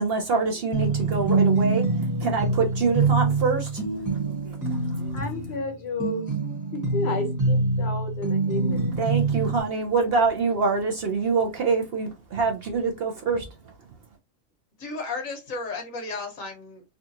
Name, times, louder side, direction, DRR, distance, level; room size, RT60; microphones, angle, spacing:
voice 1, 0.0-3.8 4.1-5.2 9.0-13.5, right 4 dB, 60° right, 0.7 m, -25 dB
sound 1, 0.7-9.6, right 3 dB, 15° right, 1.0 m, -25 dB
voice 2, 5.1-6.3 6.7-8.9, left 3 dB, 55° left, 1.0 m, -32 dB
voice 3, 14.8-17.0, left 3 dB, 75° left, 1.5 m, -34 dB
3.7 x 2.3 x 2.7 m
omnidirectional pair, 1.4 m